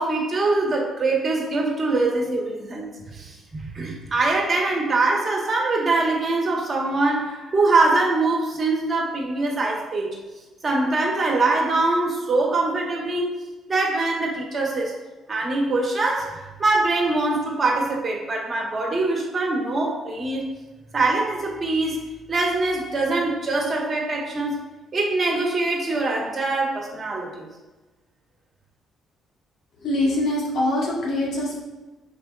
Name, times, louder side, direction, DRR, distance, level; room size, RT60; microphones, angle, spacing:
voice 1, 0.0-10.2 10.6-15.0 15.3-20.5 20.9-24.7 24.9-27.5, right 2 dB, 35° right, -1 dB, 1.3 m, -23 dB
voice 2, 29.8-31.6, left 1 dB, 70° left, -3 dB, 1.3 m, -23 dB
4.9 x 4.6 x 2.4 m, 1.2 s
supercardioid pair, 75°, 0 cm